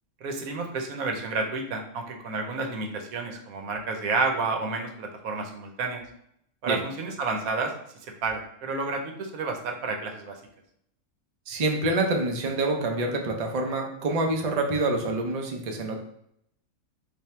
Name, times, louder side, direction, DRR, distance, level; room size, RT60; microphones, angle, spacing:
voice 1, 0.2-6.0 6.6-7.7 8.2-10.4, right 3 dB, 85° right, 3 dB, 1.2 m, -30 dB
voice 2, 11.5-16.0, right 2 dB, 50° right, 2 dB, 0.4 m, -26 dB
3.4 x 2.7 x 4.2 m, 0.72 s
omnidirectional pair, 1.5 m